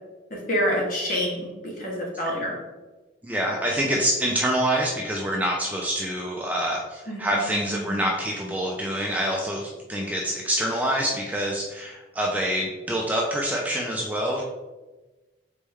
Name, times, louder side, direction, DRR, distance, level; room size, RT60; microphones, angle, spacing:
voice 1, 0.3-2.6 7.1-8.0, equal, 45° left, -3 dB, 1.1 m, -28 dB
voice 2, 3.2-14.4, right 1 dB, 10° right, -2 dB, 0.4 m, -26 dB
4.2 x 3.4 x 3.4 m, 1.2 s
head